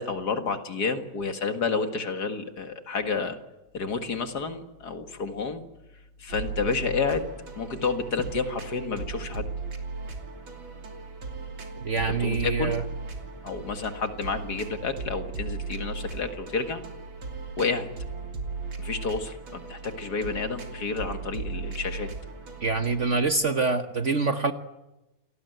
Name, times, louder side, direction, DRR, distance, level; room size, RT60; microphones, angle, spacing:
voice 1, 0.0-3.4 3.7-5.6 6.2-7.3 7.6-9.5 12.1-12.8 13.4-16.8 17.6-17.9 18.8-22.1, left 4 dB, 55° left, 7 dB, 2.3 m, -30 dB
sound 1, 6.3-23.2, right 4 dB, 85° right, 3.7 m, -37 dB
voice 2, 11.8-12.8 22.6-24.5, right 4 dB, 45° right, 8 dB, 1.3 m, -25 dB
28.5 x 19.0 x 9.3 m, 0.98 s
omnidirectional pair, 2.1 m